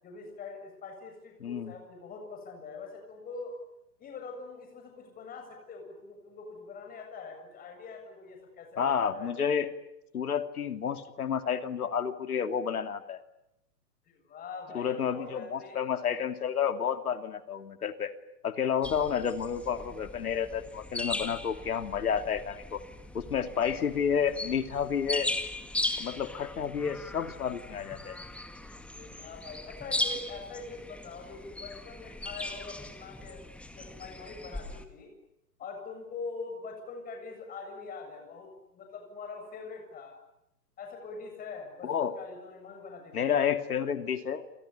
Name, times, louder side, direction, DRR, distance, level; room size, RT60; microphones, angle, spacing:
voice 1, 0.0-3.5 4.0-9.3 14.1-15.8 28.9-33.5 33.7-35.1 35.6-40.1 40.8-43.3, left 4 dB, 20° left, 4 dB, 7.4 m, -43 dB
voice 2, 1.4-1.7 8.8-9.7 10.1-13.2 14.7-18.1 18.4-22.8 23.1-25.3 26.0-28.2 41.8-42.2 43.1-44.4, left 7 dB, 65° left, 9 dB, 2.8 m, -30 dB
sound 1, 18.8-34.9, left 1 dB, ahead, 2.0 m, -38 dB
29.0 x 29.0 x 7.1 m, 0.85 s
figure-of-eight pair, 125°, 48 cm